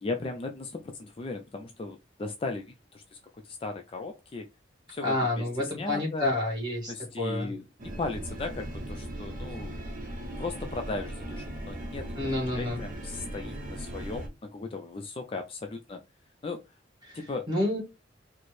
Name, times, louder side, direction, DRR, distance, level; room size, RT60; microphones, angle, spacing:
voice 1, 0.0-4.4 4.9-6.3 6.9-7.6 8.0-9.7 10.4-16.0 16.4-16.6 17.1-17.5, left 3 dB, 30° left, 0.3 m, -37 dB
voice 2, 5.0-7.5 12.1-12.8 17.0-17.2 17.5-17.8, left 2 dB, 25° right, 1.7 m, -29 dB
sound 1, 7.8-14.3, right 1 dB, 45° right, 0.7 m, -38 dB
4.2 x 2.0 x 3.1 m
head